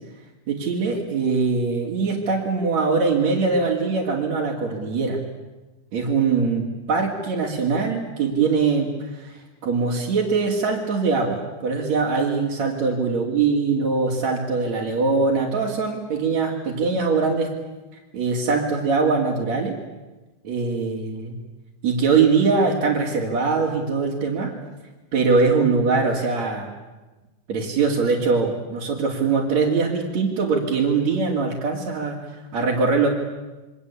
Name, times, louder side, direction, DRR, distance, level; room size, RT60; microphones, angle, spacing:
voice 1, 0.5-5.2 5.9-9.4 9.6-17.5 18.1-19.8 20.4-21.4 21.8-24.5 25.1-26.7 27.5-32.2 32.5-33.1, right 4 dB, 60° right, -4 dB, 4.0 m, -22 dB
27.5 x 24.0 x 8.5 m, 1.1 s
omnidirectional pair, 3.5 m